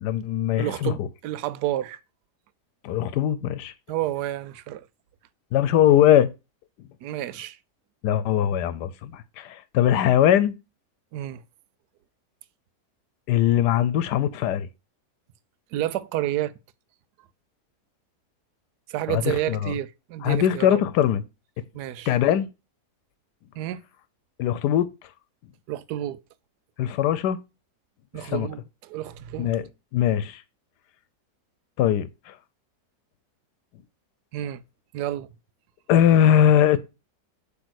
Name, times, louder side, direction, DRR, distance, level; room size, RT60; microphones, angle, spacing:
voice 1, 0.0-1.1 2.8-3.7 5.5-6.3 8.0-10.5 13.3-14.7 19.1-19.2 19.5-19.7 20.2-21.2 22.1-22.5 24.4-24.9 26.8-27.4 28.2-28.5 29.4-30.4 31.8-32.3 35.9-36.8, left 10 dB, 85° left, 1.2 m, -21 dB
voice 2, 0.6-2.0 3.9-4.9 7.0-7.6 11.1-11.4 13.7-13.8 15.7-16.5 18.9-20.8 21.7-22.1 23.5-23.8 25.7-26.2 28.1-29.5 34.3-34.6 34.9-35.3, right 13 dB, 80° right, 1.1 m, -30 dB
8.0 x 3.3 x 6.2 m
omnidirectional pair, 1.7 m